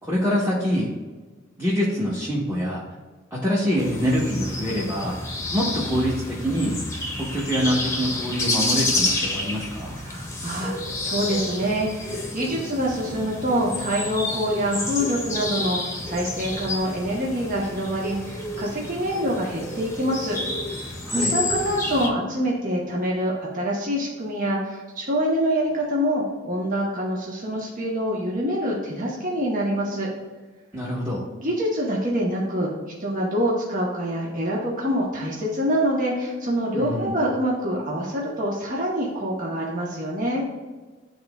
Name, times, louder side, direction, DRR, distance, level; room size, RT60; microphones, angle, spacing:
voice 1, 0.0-0.9 1.6-2.8 3.3-5.2 5.5-6.8 7.2-10.0 21.0-21.3 30.7-31.3 36.7-37.1, equal, 10° right, -7 dB, 1.2 m, -25 dB
sound 1, 3.8-22.1, left 2 dB, 15° left, 1.0 m, -29 dB
voice 2, 10.0-20.4 20.6-30.1 31.4-32.7 33.0-40.4, equal, 40° right, -3 dB, 1.2 m, -26 dB
11.0 x 4.0 x 2.4 m, 1.3 s
head